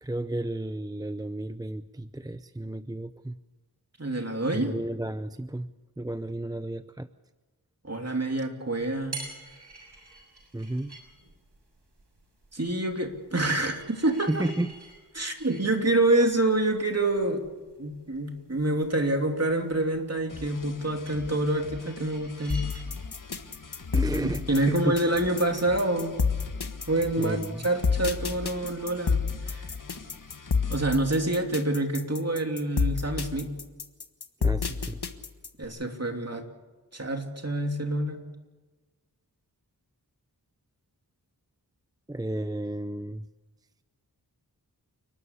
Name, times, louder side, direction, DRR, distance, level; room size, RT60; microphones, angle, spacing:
voice 1, 0.0-3.4 4.5-5.7 6.0-7.1 10.5-11.0 14.3-14.7 23.9-24.9 27.2-27.7 34.4-35.0 42.1-43.3, right 1 dB, 10° right, 12 dB, 0.6 m, -32 dB
voice 2, 4.0-4.7 7.8-9.2 12.5-14.4 15.1-17.4 17.8-22.7 24.5-26.3 26.9-29.7 30.7-33.5 35.6-36.5 36.9-38.3, right 2 dB, 40° right, 3 dB, 3.1 m, -27 dB
sound 1, 8.8-26.3, right 2 dB, 90° right, 6.7 m, -49 dB
sound 2, 20.3-31.0, left 4 dB, 55° left, 1.3 m, -45 dB
sound 3, 22.5-35.6, left 5 dB, 75° left, 1.5 m, -29 dB
29.0 x 12.5 x 8.4 m, 1.2 s
wide cardioid pair, 45°, 39 cm